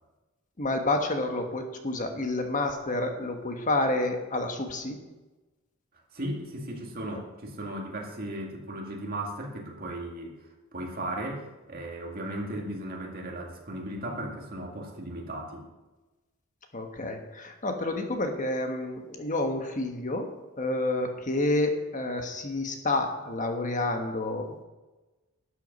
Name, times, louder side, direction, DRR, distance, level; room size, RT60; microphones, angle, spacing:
voice 1, 0.6-5.0 16.7-20.3 20.6-24.6, left 2 dB, 40° left, 4 dB, 1.3 m, -29 dB
voice 2, 6.1-15.7, right 1 dB, 45° right, 0 dB, 2.2 m, -36 dB
12.0 x 8.2 x 5.4 m, 1.1 s
head